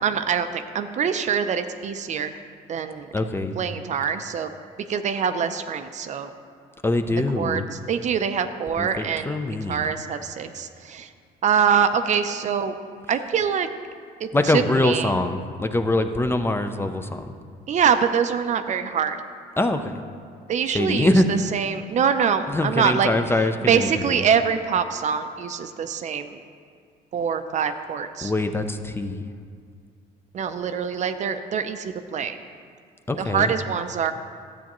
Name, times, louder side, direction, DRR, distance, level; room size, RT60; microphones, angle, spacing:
voice 1, 0.0-2.3 2.7-3.1 3.6-4.5 4.9-6.3 7.1-7.6 7.9-9.4 9.7-11.1 11.4-12.7 13.1-13.7 14.2-15.1 17.7-19.2 20.5-23.1 23.7-26.4 27.1-28.3 30.3-32.4 33.2-34.1, right 7 dB, 45° right, 9 dB, 0.5 m, -24 dB
voice 2, 3.1-3.6 6.8-7.6 8.8-9.9 14.3-17.3 19.6-20.0 20.7-21.3 22.5-24.2 28.2-29.3 33.1-33.5, left 2 dB, 15° left, 7 dB, 0.5 m, -23 dB
12.5 x 8.3 x 3.0 m, 2.2 s
cardioid pair, 110°, 17 cm